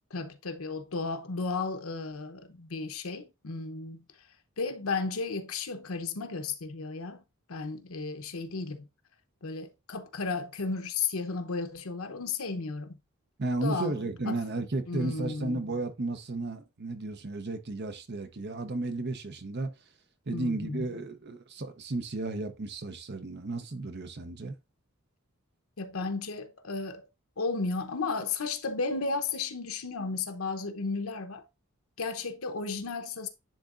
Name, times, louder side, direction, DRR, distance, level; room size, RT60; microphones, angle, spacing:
voice 1, 0.1-4.0 4.6-7.2 7.5-8.9 9.4-13.0 13.6-13.9 14.2-14.4 14.9-15.6 20.3-20.9 25.8-27.1 27.4-31.5 32.0-33.3, left 4 dB, 85° left, 0.9 m, -34 dB
voice 2, 13.4-19.7 20.3-24.5, right 2 dB, 55° right, 0.8 m, -33 dB
10.5 x 3.7 x 2.5 m
head